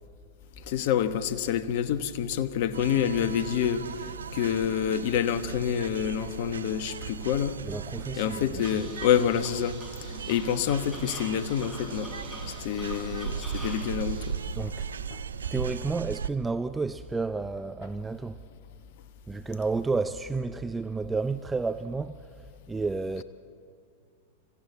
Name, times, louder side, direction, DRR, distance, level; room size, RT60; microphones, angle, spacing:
voice 1, 0.7-7.6 8.2-9.8 10.3-12.1 12.5-14.4 15.1-15.2, left 9 dB, 55° left, 1.1 m, -27 dB
sound 1, 2.7-16.3, right 7 dB, 80° right, 0.5 m, -37 dB
voice 2, 7.6-8.8 12.6-12.7 14.5-14.9 15.5-18.4 19.3-23.2, right 4 dB, 10° right, 0.6 m, -31 dB
sound 2, 8.6-14.3, equal, 10° left, 6.5 m, -44 dB
25.5 x 15.5 x 8.3 m
hypercardioid pair, 100°, 0 cm